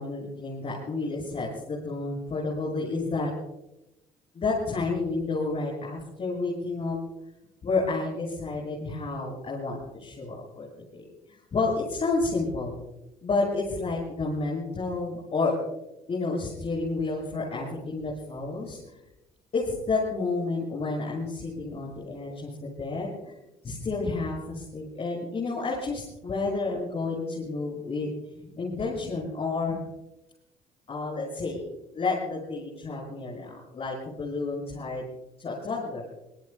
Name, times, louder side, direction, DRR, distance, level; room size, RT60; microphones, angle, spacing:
voice 1, 0.0-3.3 4.3-7.0 7.6-10.7 10.9-11.1 11.5-12.8 13.2-15.5 16.1-19.0 19.5-22.5 22.8-23.1 23.6-28.1 28.4-29.8 30.9-31.6 31.9-35.0 35.4-36.0, left 3 dB, 45° left, -4 dB, 6.9 m, -30 dB
25.5 x 20.0 x 2.2 m, 0.91 s
supercardioid pair, 85°, 15 cm